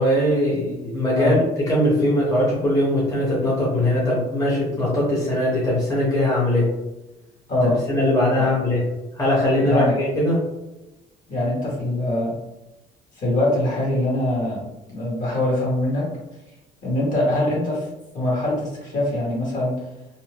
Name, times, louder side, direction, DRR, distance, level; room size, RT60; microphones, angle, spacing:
voice 1, 0.0-6.7 7.7-8.8 9.2-10.4, left 1 dB, 20° left, -6 dB, 1.0 m, -20 dB
voice 2, 9.6-9.9 11.3-12.3 13.2-14.6 14.9-16.1 16.8-17.9 18.1-19.7, left 1 dB, 50° left, -4 dB, 1.4 m, -23 dB
2.7 x 2.0 x 3.3 m, 1.0 s
cardioid pair, 110°, 17 cm